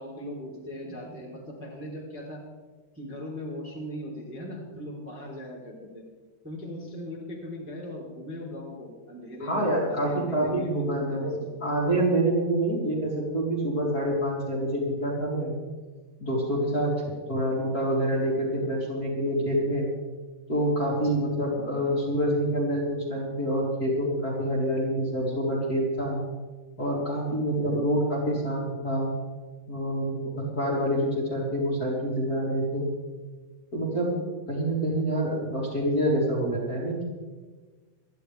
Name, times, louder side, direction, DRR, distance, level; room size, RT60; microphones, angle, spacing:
voice 1, 0.0-2.4 2.9-6.0 6.4-11.5 17.3-17.4 18.6-18.7 20.8-21.0 21.5-21.8, equal, 5° right, -5 dB, 2.8 m, -39 dB
voice 2, 9.4-15.5 16.2-16.9 17.3-19.9 20.5-26.2 26.8-29.1 29.7-32.9 33.7-37.0, right 1 dB, 25° left, -5 dB, 3.3 m, -27 dB
26.5 x 11.0 x 3.5 m, 1.3 s
omnidirectional pair, 5.0 m